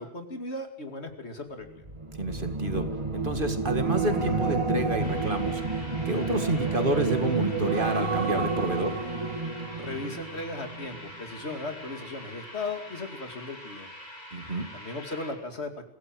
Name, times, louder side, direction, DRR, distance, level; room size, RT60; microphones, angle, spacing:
voice 1, 0.0-1.8 9.7-13.9 14.7-15.7, left 2 dB, 65° left, 6 dB, 2.9 m, -37 dB
sound 1, 1.8-11.2 11.5-11.8, right 4 dB, 25° right, 2.2 m, -30 dB
voice 2, 2.1-2.9 3.1-5.6 6.1-9.0 14.3-14.7, right 2 dB, 45° right, 8 dB, 2.2 m, -29 dB
sound 2, 5.0-15.3, left 1 dB, 40° left, 6.2 m, -45 dB
24.0 x 16.5 x 7.8 m, 0.69 s
omnidirectional pair, 1.2 m